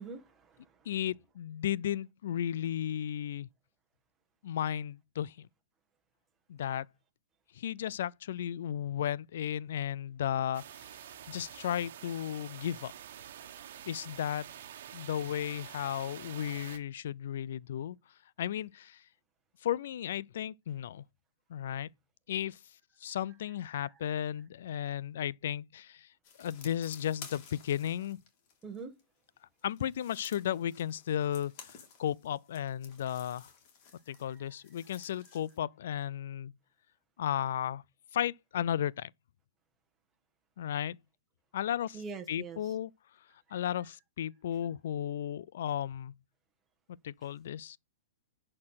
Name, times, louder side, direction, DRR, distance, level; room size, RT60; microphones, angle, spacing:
voice 1, 0.0-0.9 23.7-24.1 28.6-28.9 34.1-34.6 41.9-42.8 43.5-43.6 47.2-47.3, right 5 dB, 15° right, 1.5 m, -46 dB
voice 2, 0.9-3.5 4.4-5.5 6.5-6.9 7.6-10.6 11.3-12.9 13.9-14.5 14.9-18.0 18.4-19.0 19.6-21.0 21.5-21.9 22.3-22.6 23.0-26.1 26.4-28.2 29.6-31.7 32.0-33.5 34.1-36.5 37.2-37.8 38.1-39.1 40.6-41.0 41.5-42.0 42.3-42.9 43.5-46.1 47.0-47.8, left 10 dB, 65° left, 0.4 m, -34 dB
sound 1, 10.5-16.8, right 10 dB, 60° right, 1.4 m, -48 dB
sound 2, 26.2-29.0 29.6-35.6, left 6 dB, 40° left, 2.8 m, -54 dB
10.5 x 4.4 x 5.7 m
hypercardioid pair, 150°, 0 cm